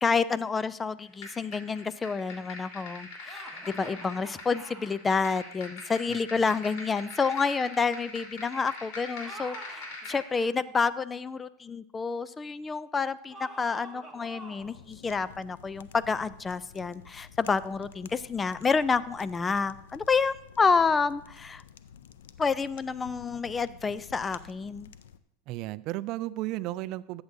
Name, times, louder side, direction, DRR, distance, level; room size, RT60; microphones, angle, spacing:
voice 1, 0.0-21.6 22.4-24.9, left 5 dB, 20° left, 17 dB, 0.4 m, -29 dB
sound 1, 1.2-10.3, left 3 dB, 70° left, 3.6 m, -43 dB
sound 2, 3.3-5.0 9.1-10.5 13.3-14.8, right 2 dB, ahead, 1.7 m, -46 dB
voice 2, 6.1-6.6 25.5-27.2, right 17 dB, 50° right, 17 dB, 0.3 m, -35 dB
sound 3, 14.6-25.2, left 8 dB, 85° left, 0.4 m, -51 dB
13.5 x 7.8 x 2.7 m, 0.77 s
supercardioid pair, 115°, 0 cm